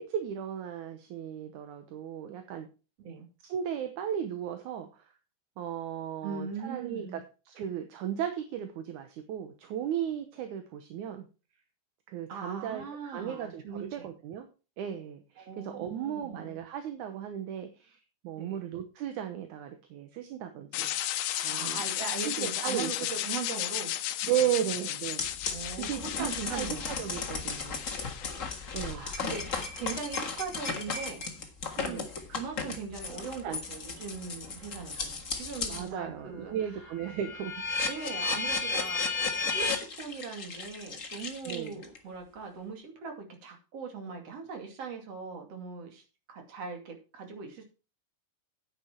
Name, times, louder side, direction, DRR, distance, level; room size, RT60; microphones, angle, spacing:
voice 1, 0.0-2.7 3.4-5.0 5.6-11.3 12.1-14.5 14.8-20.9 21.3-21.8 22.2-23.1 24.2-27.8 28.7-29.1 31.9-32.1 33.4-33.6 35.7-37.6 41.5-41.8, right 10 dB, 70° right, 7 dB, 2.4 m, -35 dB
voice 2, 6.2-7.2 12.3-14.1 15.4-16.6 18.4-18.7 21.5-23.9 24.3-24.5 25.5-27.0 28.9-36.9 37.8-39.7 40.0-46.0 46.3-47.6, right 5 dB, 50° right, 3 dB, 3.4 m, -40 dB
sound 1, 20.7-28.8, left 13 dB, 75° left, 2.2 m, -35 dB
sound 2, 25.2-35.9 36.3-42.0, left 4 dB, 40° left, 1.2 m, -35 dB
9.7 x 8.8 x 4.5 m, 0.33 s
omnidirectional pair, 3.8 m